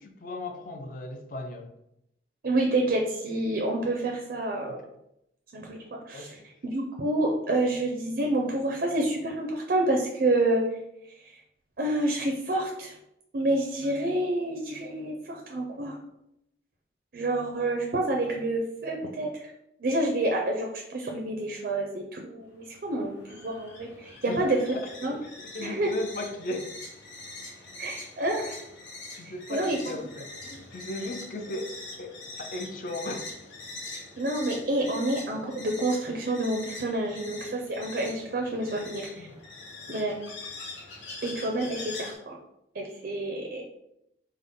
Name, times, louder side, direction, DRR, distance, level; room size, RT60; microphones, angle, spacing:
voice 1, 0.0-1.7 4.7-4.9 6.1-6.4 24.3-25.3 25.5-26.7 29.2-33.3 39.2-39.3, left 1 dB, 45° left, 5 dB, 0.4 m, -37 dB
voice 2, 2.4-4.8 5.5-6.4 6.6-10.6 11.1-11.3 11.8-13.0 13.3-16.0 17.1-19.5 19.8-24.6 25.0-25.1 25.6-25.9 27.8-28.6 29.2-29.8 34.2-39.3 39.9-40.2 41.2-42.4 42.7-43.7, right 1 dB, 55° right, 1 dB, 0.4 m, -28 dB
sound 1, 22.4-42.2, left 2 dB, 90° left, 0.8 m, -43 dB
3.6 x 2.1 x 3.5 m, 0.83 s
head